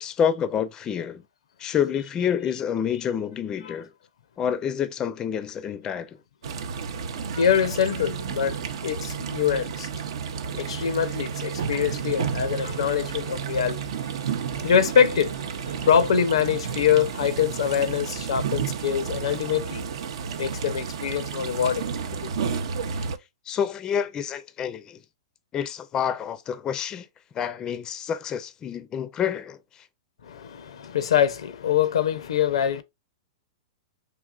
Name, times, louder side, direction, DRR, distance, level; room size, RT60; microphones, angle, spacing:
voice 1, 0.0-1.2 1.6-3.9 4.4-6.2 22.9-23.1 23.5-25.0 25.5-27.1 27.3-29.9, left 8 dB, 25° left, 0.4 m, -28 dB
sound 1, 6.4-23.2, right 6 dB, 70° right, 0.5 m, -31 dB
voice 2, 7.3-9.9 10.6-14.1 14.6-19.9 20.4-21.9 22.2-22.3 30.2-32.8, left 8 dB, 80° left, 0.5 m, -24 dB
3.7 x 2.8 x 2.3 m
hypercardioid pair, 125°, 3 cm